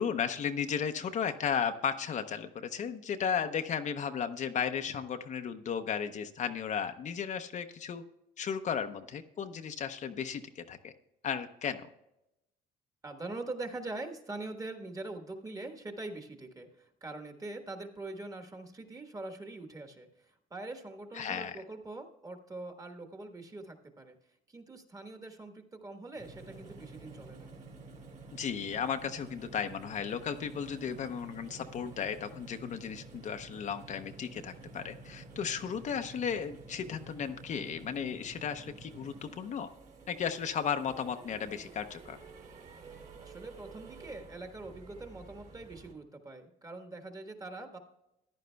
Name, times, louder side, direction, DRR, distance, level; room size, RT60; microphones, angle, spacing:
voice 1, 0.0-8.0 8.4-10.9 11.2-11.9 21.1-21.5 28.3-39.7 40.1-42.2, left 7 dB, 45° left, 8 dB, 0.7 m, -35 dB
voice 2, 13.0-24.2 24.5-27.5 43.2-47.8, right 2 dB, 20° right, 5 dB, 1.4 m, -43 dB
sound 1, 26.2-45.9, right 3 dB, 45° right, 2.5 m, -51 dB
14.5 x 10.5 x 2.2 m, 0.87 s
cardioid pair, 110°, 17 cm